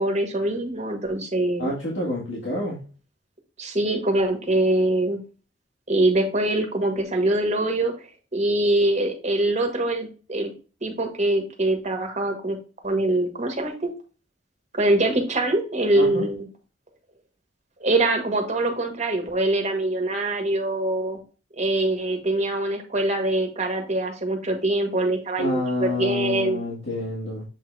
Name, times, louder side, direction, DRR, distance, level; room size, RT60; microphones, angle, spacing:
voice 1, 0.0-1.7 3.6-5.2 5.9-7.9 8.3-10.5 10.8-12.6 12.8-13.9 14.7-16.5 17.8-21.2 21.6-26.6, right 1 dB, 40° right, 3 dB, 1.6 m, -23 dB
voice 2, 1.6-2.8 16.0-16.3 25.4-27.4, left 1 dB, 90° left, -5 dB, 1.9 m, -28 dB
7.6 x 3.8 x 3.3 m, 0.36 s
head